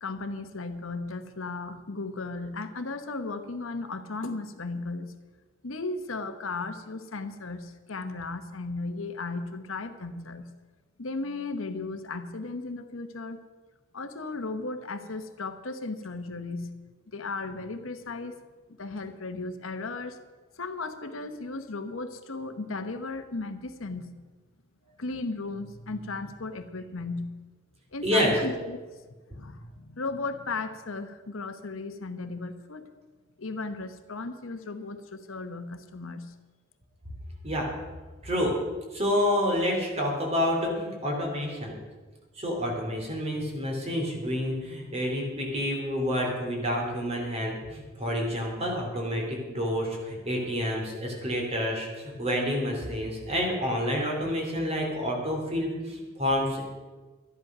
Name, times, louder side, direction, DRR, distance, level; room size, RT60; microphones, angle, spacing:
voice 1, 0.0-5.1 5.6-10.5 11.0-13.4 13.9-16.7 17.1-18.4 18.7-20.2 20.6-24.1 25.0-27.3 27.9-28.8 29.3-32.8 33.4-36.3, left 3 dB, 85° left, 8 dB, 1.1 m, -35 dB
voice 2, 38.2-38.5 38.9-41.8 42.4-56.6, equal, 30° right, 0 dB, 3.0 m, -28 dB
12.5 x 10.5 x 6.0 m, 1.3 s
head